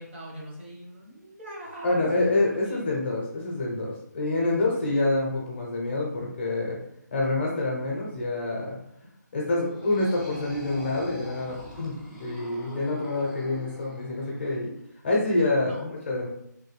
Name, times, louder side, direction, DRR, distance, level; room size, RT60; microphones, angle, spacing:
voice 1, 0.0-3.0 15.6-15.8, right 1 dB, 40° right, -3 dB, 1.0 m, -42 dB
voice 2, 1.8-6.8 7.1-8.8 9.3-14.7 15.0-16.3, left 2 dB, 40° left, -3 dB, 0.6 m, -27 dB
sound 1, 9.6-14.5, left 1 dB, ahead, 0.3 m, -43 dB
3.2 x 2.1 x 3.1 m, 0.75 s
hypercardioid pair, 175°, 10 cm